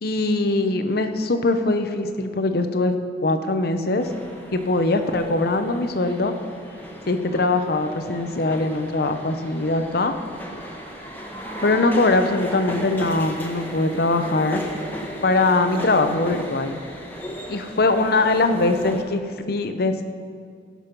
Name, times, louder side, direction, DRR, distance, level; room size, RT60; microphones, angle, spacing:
voice 1, 0.0-2.9 3.2-4.1 4.5-6.3 7.0-10.1 11.6-14.6 15.2-16.8 17.5-20.0, left 2 dB, 55° left, 8 dB, 0.7 m, -22 dB
sound 1, 4.0-19.0, equal, 10° left, 1.2 m, -36 dB
17.5 x 6.3 x 5.3 m, 2.1 s
head